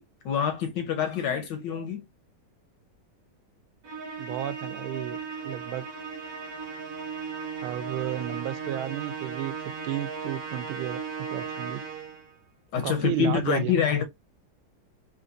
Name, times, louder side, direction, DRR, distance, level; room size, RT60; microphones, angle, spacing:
voice 1, 0.0-2.0 12.7-14.0, left 7 dB, 70° left, 1.1 m, -26 dB
Musical instrument, 3.8-12.3, right 5 dB, 55° right, 1.1 m, -36 dB
voice 2, 4.2-5.2 5.4-5.8 7.6-9.5 9.8-11.0 11.3-11.8 12.8-13.7, right 12 dB, 80° right, 1.4 m, -32 dB
3.9 x 2.5 x 2.5 m
omnidirectional pair, 2.3 m